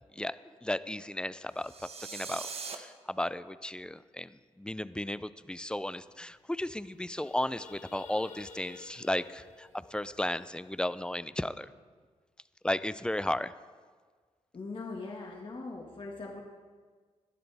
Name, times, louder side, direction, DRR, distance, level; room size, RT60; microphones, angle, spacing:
voice 1, 0.6-1.7 2.1-4.3 4.6-11.7 12.6-13.5, left 1 dB, 5° left, 15 dB, 0.5 m, -34 dB
sound 1, 1.6-2.8, right 5 dB, 55° right, 1.3 m, -41 dB
sound 2, 5.8-5.9 6.1-6.3 6.7-11.0, left 5 dB, 85° left, 1.2 m, -52 dB
voice 2, 14.5-16.4, left 3 dB, 45° left, -1 dB, 1.8 m, -41 dB
18.0 x 12.0 x 3.5 m, 1.5 s
cardioid pair, 70°, 12 cm